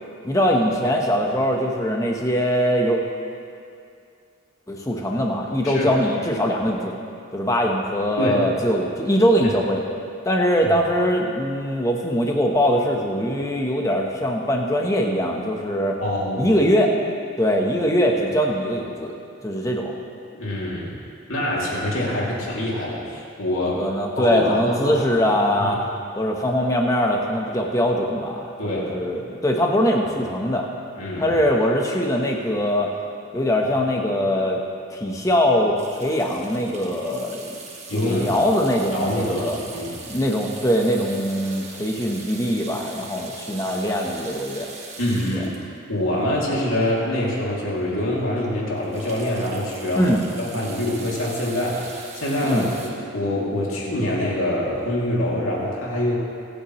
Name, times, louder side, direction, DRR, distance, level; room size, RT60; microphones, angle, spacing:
voice 1, 0.2-3.0 4.7-7.0 7.3-9.8 10.2-16.0 16.4-16.9 17.4-19.1 19.4-20.0 23.7-25.8 26.2-30.7 31.2-32.9 33.3-34.6 34.9-37.4 37.9-39.6 40.1-44.7 45.3-45.4 49.9-50.2 52.4-52.7, equal, 15° left, 0 dB, 1.1 m, -22 dB
voice 2, 5.6-5.9 8.2-8.4 9.4-9.5 16.0-16.5 20.3-21.0 21.3-23.8 24.2-25.0 25.6-25.9 28.6-28.9 31.0-31.3 37.9-38.4 38.9-40.0 45.0-45.5 45.9-50.1 50.4-56.2, left 1 dB, 75° left, -5 dB, 2.8 m, -25 dB
sound 1, 35.8-47.1 47.6-47.7 47.9-48.1 48.4-52.9, right 4 dB, 30° right, 1.4 m, -41 dB
25.0 x 8.7 x 3.2 m, 2.4 s
head